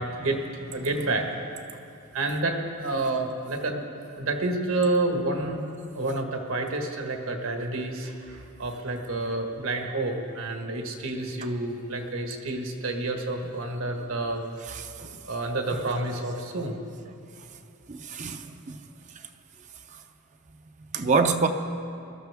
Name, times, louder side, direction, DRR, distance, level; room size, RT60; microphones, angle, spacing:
voice 1, 0.0-1.5 2.1-3.9 4.2-5.6 5.9-14.4 15.2-16.8, right 2 dB, 70° right, 3 dB, 1.5 m, -29 dB
voice 2, 14.7-15.1 17.9-18.8 20.9-21.5, right 4 dB, 35° right, 6 dB, 0.5 m, -26 dB
21.0 x 13.0 x 3.5 m, 2.6 s
head